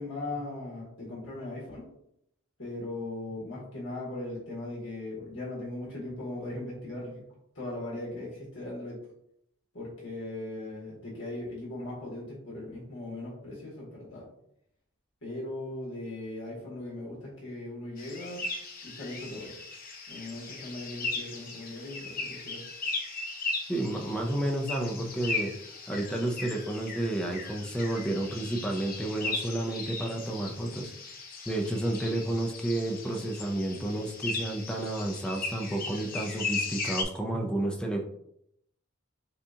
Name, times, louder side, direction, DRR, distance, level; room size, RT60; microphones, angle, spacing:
voice 1, 0.0-1.8 2.6-9.0 9.7-14.2 15.2-18.5 18.8-19.5 20.1-22.6, left 2 dB, 60° left, -5 dB, 1.6 m, -39 dB
sound 1, 18.0-37.0, left 3 dB, 40° left, 0.7 m, -37 dB
voice 2, 23.7-25.5 25.9-30.9 31.5-38.0, right 1 dB, 5° left, 1 dB, 0.5 m, -31 dB
6.9 x 2.4 x 2.8 m, 0.74 s
head